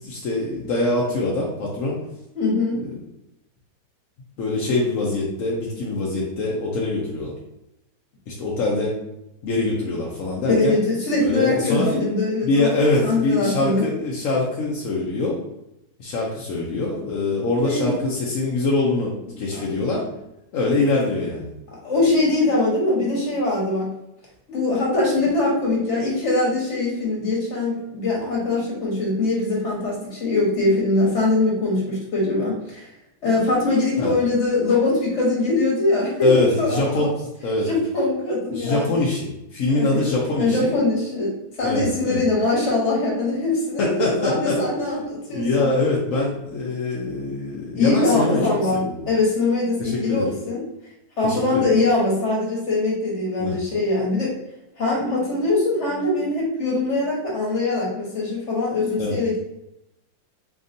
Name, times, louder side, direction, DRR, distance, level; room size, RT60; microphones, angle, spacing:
voice 1, 0.0-2.0 2.8-2.9 4.4-7.3 8.3-9.0 9.4-10.8 11.2-11.9 12.4-15.4 16.0-20.1 20.5-21.5 34.0-34.1 36.2-37.1 37.4-37.7 38.5-40.7 41.6-42.2 43.8-44.6 45.3-48.4 48.7-49.1 49.8-50.3 51.2-51.7 53.4-53.6 59.0-59.2, left 2 dB, 65° left, -4 dB, 0.8 m, -23 dB
voice 2, 2.3-2.9 10.4-12.8 13.0-13.8 17.6-17.9 19.5-19.6 21.7-23.9 24.5-32.9 33.2-36.8 37.6-39.0 39.7-40.0 40.4-45.7 47.7-50.6 51.2-54.3 54.8-59.4, left 2 dB, 40° left, -4 dB, 1.4 m, -22 dB
3.9 x 3.5 x 2.6 m, 0.86 s
omnidirectional pair, 2.1 m